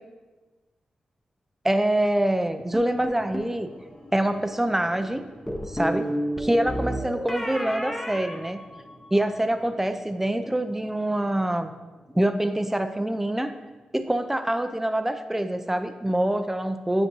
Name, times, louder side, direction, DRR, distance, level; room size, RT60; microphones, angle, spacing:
voice 1, 1.6-3.7 4.1-5.2 5.7-6.0 6.4-8.6 9.1-11.7 12.1-13.5 13.9-17.1, right 1 dB, 10° right, 9 dB, 0.5 m, -25 dB
sound 1, 2.5-14.7, left 1 dB, 55° left, 2.2 m, -52 dB
sound 2, 2.7-3.6 5.5-9.2, equal, 10° left, 0.9 m, -31 dB
8.3 x 5.3 x 3.0 m, 1.2 s
cardioid pair, 50°, 3 cm